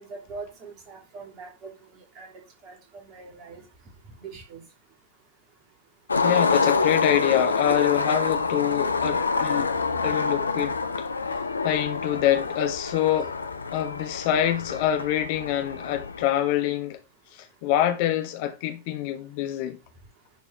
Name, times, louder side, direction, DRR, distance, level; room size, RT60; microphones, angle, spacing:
voice 1, 0.0-1.7 2.1-2.7 3.1-3.6 4.2-4.7, right 4 dB, 35° right, 3.2 m, -42 dB
Skateboard, 6.1-16.3, left 4 dB, 75° left, 0.7 m, -27 dB
voice 2, 6.2-9.7 10.0-11.1 11.4-13.3 13.7-17.0 17.3-19.8, left 11 dB, 45° left, 1.2 m, -26 dB
10.5 x 4.8 x 4.6 m
figure-of-eight pair, 90°, 0 cm